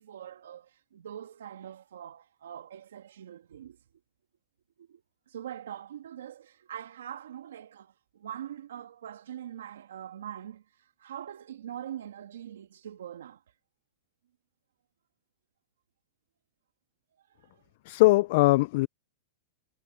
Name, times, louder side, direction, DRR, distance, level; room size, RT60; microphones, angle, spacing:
voice 1, 0.0-3.8 4.8-13.5 17.2-17.6, right 10 dB, 85° right, 1.8 m, -43 dB
voice 2, 17.9-18.9, left 21 dB, 55° left, 0.3 m, -21 dB
hypercardioid pair, 135°, 0 cm